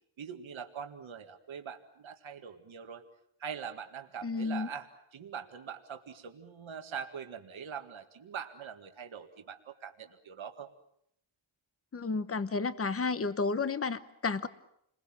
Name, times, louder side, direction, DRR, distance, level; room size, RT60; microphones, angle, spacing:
voice 1, 0.2-3.0 3.4-10.7, right 7 dB, 75° right, 5 dB, 2.0 m, -43 dB
voice 2, 4.2-4.7 11.9-14.5, left 4 dB, 30° left, 13 dB, 1.0 m, -32 dB
29.5 x 21.5 x 7.5 m, 0.74 s
wide cardioid pair, 170°, 48 cm